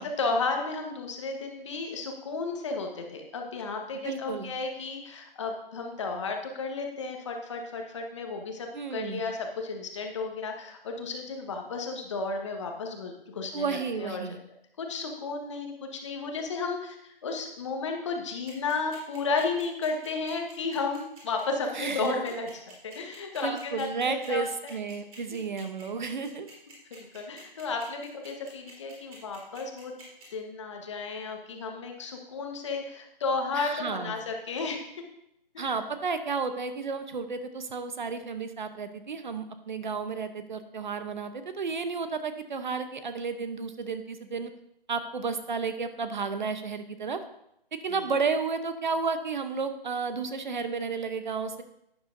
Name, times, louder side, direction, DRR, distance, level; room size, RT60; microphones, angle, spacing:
voice 1, 0.0-14.2 14.8-24.5 26.3-26.5 26.9-29.9 30.3-34.9 35.5-35.7 47.9-48.1, left 4 dB, 30° left, 3 dB, 1.2 m, -33 dB
voice 2, 4.0-4.5 8.7-9.2 13.5-14.4 21.7-22.2 23.4-26.5 33.5-34.2 35.6-44.5 44.9-47.2 47.8-51.6, right 5 dB, 55° right, 9 dB, 0.8 m, -32 dB
sound 1, 18.5-30.2, right 4 dB, 35° right, 3.5 m, -50 dB
12.0 x 9.3 x 2.6 m, 0.78 s
hypercardioid pair, 160°, 29 cm